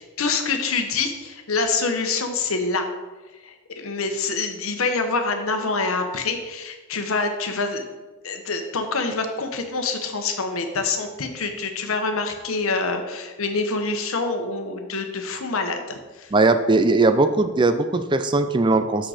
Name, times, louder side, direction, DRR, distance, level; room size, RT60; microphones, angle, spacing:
voice 1, 0.0-2.9 3.4-7.9 8.2-16.3, left 3 dB, 80° left, 6 dB, 1.0 m, -26 dB
voice 2, 16.3-19.1, right 3 dB, 20° right, 10 dB, 0.4 m, -19 dB
6.3 x 6.3 x 4.9 m, 1.2 s
head